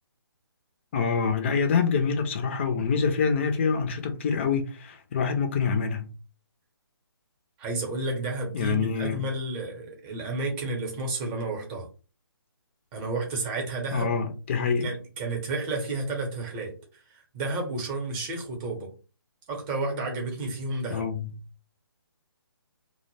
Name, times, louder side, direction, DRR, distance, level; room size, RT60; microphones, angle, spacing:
voice 1, 0.9-6.1 8.5-9.3 13.9-14.9 20.9-21.3, left 5 dB, 30° left, 0.4 m, -26 dB
voice 2, 7.6-11.9 12.9-14.1 14.8-16.7 17.1-18.9 19.5-21.1, right 2 dB, 20° right, 0.7 m, -31 dB
2.1 x 2.0 x 3.1 m
figure-of-eight pair, 145°, 13 cm